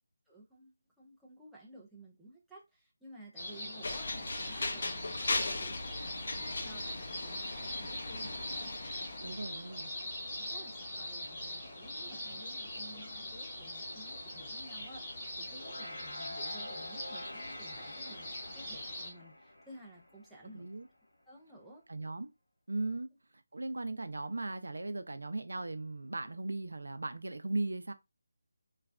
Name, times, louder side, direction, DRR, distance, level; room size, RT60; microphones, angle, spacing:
voice 1, 0.3-9.4 10.4-20.7 21.3-21.8, right 1 dB, ahead, 0.4 m, -54 dB
sound 1, 3.3-19.1, left 1 dB, 20° left, 0.8 m, -42 dB
sound 2, 3.8-9.5, left 2 dB, 45° left, 0.5 m, -38 dB
voice 2, 9.2-9.9 20.4-20.9 21.9-22.3 22.7-23.1 23.5-27.9, right 2 dB, 90° right, 0.5 m, -37 dB
sound 3, 15.4-20.9, left 1 dB, 85° left, 1.5 m, -48 dB
3.2 x 2.2 x 2.4 m
figure-of-eight pair, 175°, 0 cm